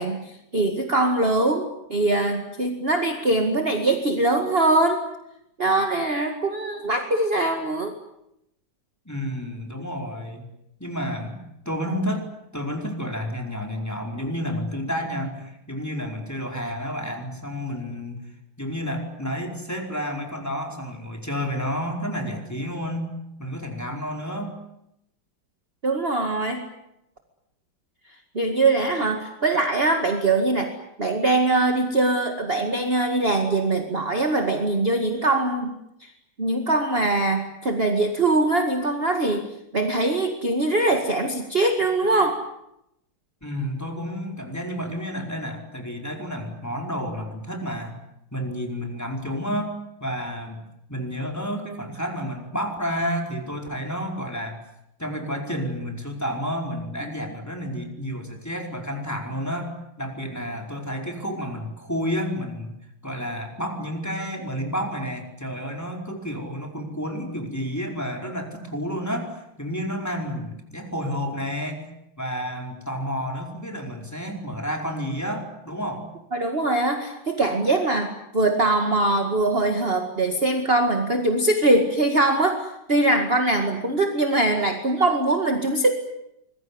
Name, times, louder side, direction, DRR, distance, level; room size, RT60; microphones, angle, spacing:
voice 1, 0.0-5.1 5.6-7.9 25.8-26.7 28.3-35.7 36.0-36.1 36.4-39.4 39.7-42.4 57.0-57.1 76.3-85.9, right 2 dB, 30° right, 5 dB, 2.2 m, -22 dB
voice 2, 9.0-10.5 10.8-12.3 12.5-18.2 18.6-23.1 23.4-24.6 43.4-47.9 48.3-50.6 50.9-54.6 55.0-62.7 63.0-71.9 72.2-76.1, equal, 5° left, 2 dB, 4.7 m, -30 dB
25.5 x 21.5 x 9.7 m, 0.82 s
omnidirectional pair, 2.3 m